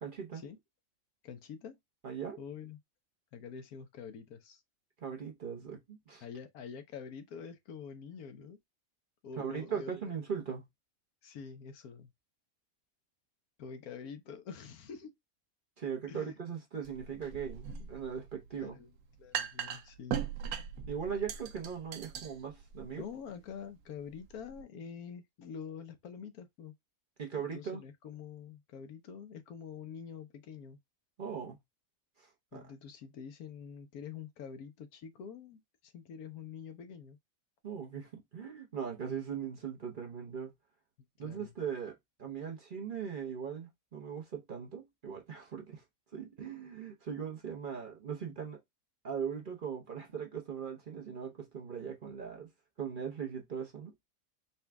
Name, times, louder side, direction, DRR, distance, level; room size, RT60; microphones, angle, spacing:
voice 1, 0.0-0.4 2.0-2.4 5.0-6.2 9.4-10.7 15.8-18.8 20.9-23.0 27.2-27.8 31.2-31.6 32.2-32.6 37.6-40.5 41.2-45.8 46.1-48.6 49.0-52.5 52.8-53.9, right 7 dB, 45° right, 0.8 m, -39 dB
voice 2, 1.2-1.8 2.4-2.8 3.3-4.6 6.2-8.6 9.2-9.9 11.2-12.1 13.6-15.2 16.1-16.3 18.5-18.9 19.2-20.2 22.9-26.7 27.4-30.8 32.5-37.2 41.2-41.5, left 6 dB, 90° left, 1.2 m, -46 dB
sound 1, 16.8-24.6, right 8 dB, 90° right, 1.1 m, -41 dB
4.2 x 2.3 x 3.3 m
omnidirectional pair, 1.5 m